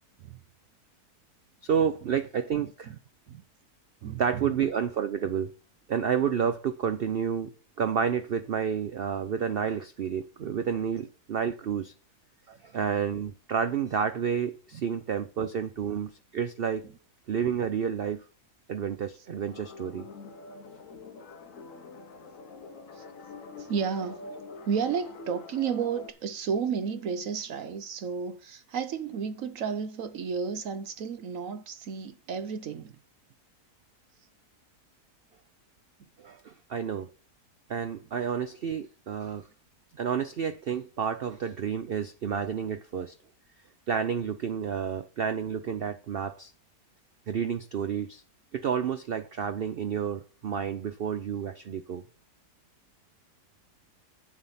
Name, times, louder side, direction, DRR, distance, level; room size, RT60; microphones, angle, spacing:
voice 1, 1.6-2.9 4.2-5.5 5.9-7.5 7.8-11.9 12.6-16.8 17.3-18.2 18.7-20.1 36.2-37.1 37.7-39.5 40.0-43.1 43.9-46.5 47.3-48.2 48.5-52.0, right 7 dB, 85° right, 0.5 m, -30 dB
voice 2, 4.0-4.5 10.4-10.6 12.5-12.6 14.7-14.9 22.9-23.0 23.6-24.3 24.6-33.0, right 6 dB, 60° right, 1.0 m, -32 dB
sound 1, 19.3-26.1, left 3 dB, 60° left, 1.2 m, -45 dB
8.8 x 7.3 x 5.7 m
omnidirectional pair, 1.7 m